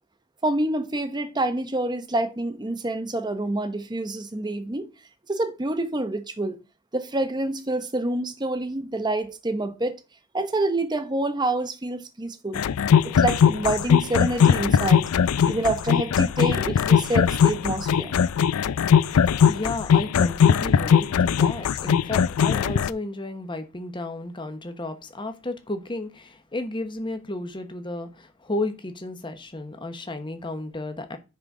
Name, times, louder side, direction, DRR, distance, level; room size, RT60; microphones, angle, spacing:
voice 1, 0.4-4.9 5.3-6.6 6.9-10.0 10.3-12.6 13.0-15.1 15.5-18.2, right 2 dB, 20° right, 0.8 m, -27 dB
sound 1, 12.6-22.9, left 7 dB, 80° left, 0.4 m, -20 dB
voice 2, 19.5-31.2, left 2 dB, 20° left, 1.0 m, -33 dB
9.6 x 4.0 x 4.8 m
head